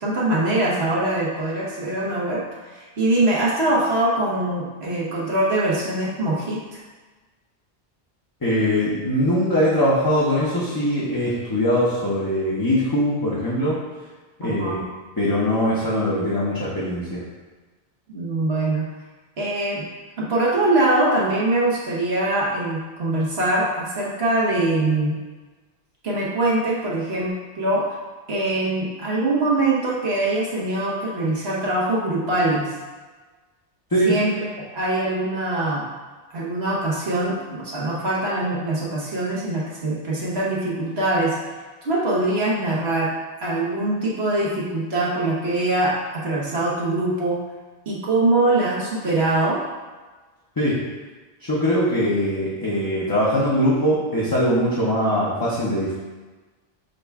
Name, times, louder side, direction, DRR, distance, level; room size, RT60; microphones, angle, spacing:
voice 1, 0.0-6.8 14.4-14.8 18.1-18.8 19.4-19.8 20.2-25.2 26.0-27.8 28.3-32.8 34.1-34.5 34.7-35.8 36.3-41.4 41.8-43.1 43.4-47.4 47.9-49.6, right 2 dB, 85° right, -5 dB, 1.3 m, -23 dB
voice 2, 8.4-13.8 14.4-14.9 15.2-17.2 33.9-34.2 50.6-50.8 51.4-55.9, equal, 25° left, -8 dB, 0.6 m, -21 dB
6.4 x 2.2 x 3.4 m, 1.3 s
omnidirectional pair, 1.0 m